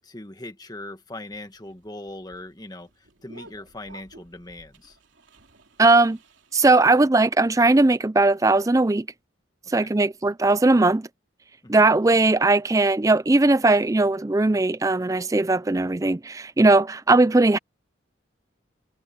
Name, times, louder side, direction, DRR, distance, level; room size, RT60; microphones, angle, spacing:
voice 1, 0.0-5.0 9.7-10.0 11.6-11.8, left 2 dB, 20° left, 1.5 m, -40 dB
sound 1, 1.1-6.7, right 2 dB, 75° right, 2.9 m, -53 dB
voice 2, 5.8-6.2 6.5-9.1 9.7-11.1 11.7-17.6, right 2 dB, 15° right, 0.4 m, -19 dB
head